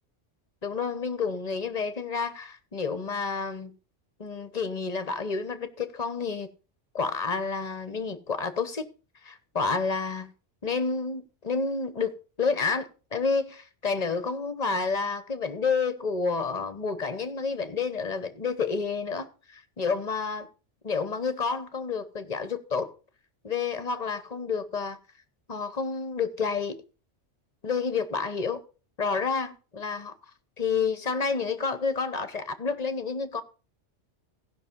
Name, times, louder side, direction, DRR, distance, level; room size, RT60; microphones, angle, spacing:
voice 1, 0.6-3.7 4.2-6.5 6.9-8.9 9.2-10.3 10.6-20.5 20.8-22.9 23.4-25.0 25.5-26.8 27.6-28.6 29.0-30.1 30.6-33.4, left 5 dB, 35° left, 1.0 m, -29 dB
15.5 x 5.7 x 5.3 m
omnidirectional pair, 1.2 m